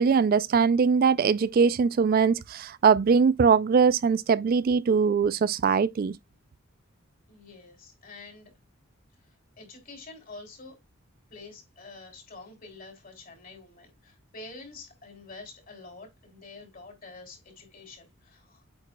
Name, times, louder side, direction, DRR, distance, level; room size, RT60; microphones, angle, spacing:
voice 1, 0.0-6.1, right 6 dB, 45° right, 0.3 m, -22 dB
voice 2, 7.3-8.5 9.6-10.8 11.3-18.7, left 3 dB, 40° left, 3.4 m, -47 dB
8.7 x 6.0 x 2.2 m
head